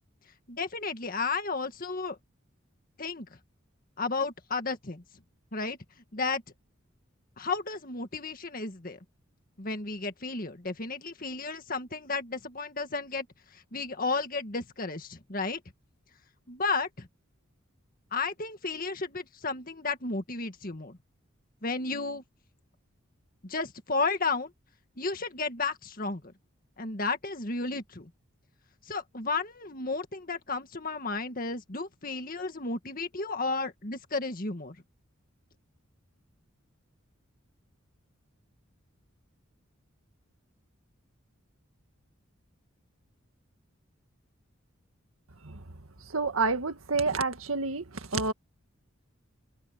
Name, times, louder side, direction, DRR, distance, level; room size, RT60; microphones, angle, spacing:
voice 1, 0.5-2.2 3.0-3.3 4.0-5.0 5.5-5.8 6.1-6.4 7.4-9.0 9.6-13.3 13.5-15.6 16.5-17.1 18.1-21.0 21.6-22.2 23.4-24.5 25.0-26.2 26.8-28.1 28.9-34.8, left 3 dB, 45° left, 1.8 m, -33 dB
voice 2, 46.1-47.8 48.1-48.3, right 3 dB, 90° right, 1.8 m, -28 dB
open air
head